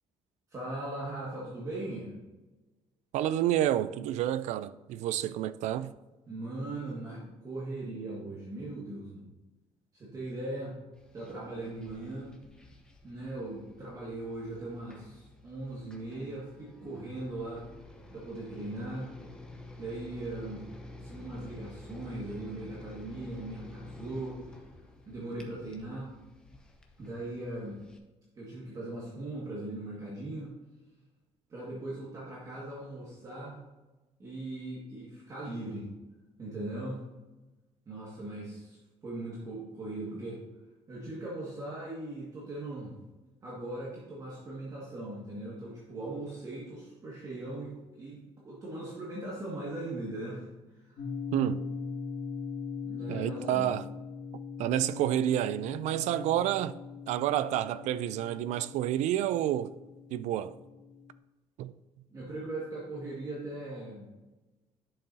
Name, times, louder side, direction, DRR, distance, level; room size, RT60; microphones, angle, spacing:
voice 1, 0.5-2.1 6.3-9.3 9.9-10.8 11.1-12.4 13.0-17.6 18.1-19.1 19.8-20.6 21.0-24.6 25.1-26.1 27.0-27.8 28.3-30.6 31.5-33.6 34.2-35.9 36.4-37.0 37.9-40.4 40.9-42.9 43.4-50.5 50.8-51.0 52.8-53.6 62.1-64.1, right 2 dB, 30° right, 1.9 m, -39 dB
voice 2, 3.1-5.9 51.3-51.7 53.1-53.9 54.6-56.7 57.1-59.7 60.1-60.5 61.6-61.7, right 12 dB, 75° right, 0.4 m, -29 dB
sound 1, 10.9-28.0, left 2 dB, 5° left, 0.9 m, -50 dB
sound 2, 51.0-61.1, left 5 dB, 50° left, 1.9 m, -41 dB
11.0 x 6.8 x 2.8 m
cardioid pair, 175°, 12 cm